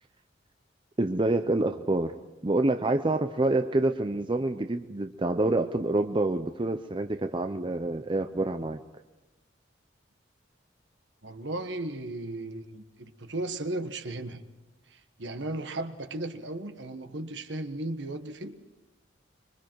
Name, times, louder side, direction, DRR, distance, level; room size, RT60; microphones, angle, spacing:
voice 1, 1.0-2.1 2.4-8.8, right 2 dB, 25° right, 7 dB, 0.7 m, -27 dB
voice 2, 11.2-14.4 14.9-18.6, right 2 dB, 65° right, 8 dB, 1.5 m, -35 dB
26.0 x 23.0 x 4.7 m, 1.1 s
head